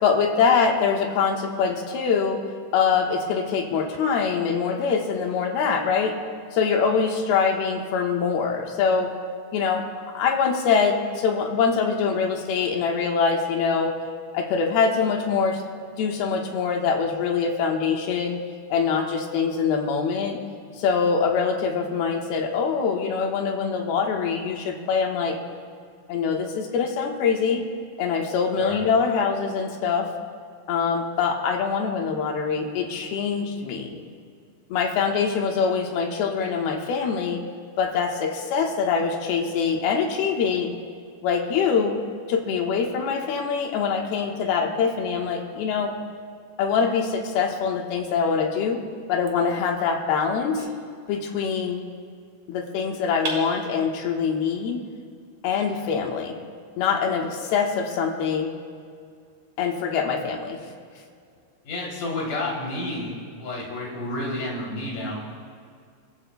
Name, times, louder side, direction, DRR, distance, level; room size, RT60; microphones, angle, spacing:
voice 1, 0.0-2.4 2.7-6.2 6.5-9.2 9.5-9.9 10.1-14.0 14.3-15.6 16.0-18.4 18.7-20.4 20.8-25.4 26.1-27.7 28.0-30.1 30.7-34.0 34.7-37.4 37.8-40.7 41.2-42.0 42.3-45.9 46.6-50.7 51.1-51.8 52.5-54.9 55.4-56.3 56.8-58.5 59.6-60.6, left 6 dB, 80° left, 2 dB, 3.1 m, -24 dB
voice 2, 28.6-28.9 61.6-65.1, left 2 dB, 55° left, -3 dB, 4.4 m, -30 dB
sound 1, 50.6-51.7 53.2-54.3, right 3 dB, 60° right, 4.9 m, -37 dB
30.0 x 14.0 x 2.2 m, 2.2 s
omnidirectional pair, 4.4 m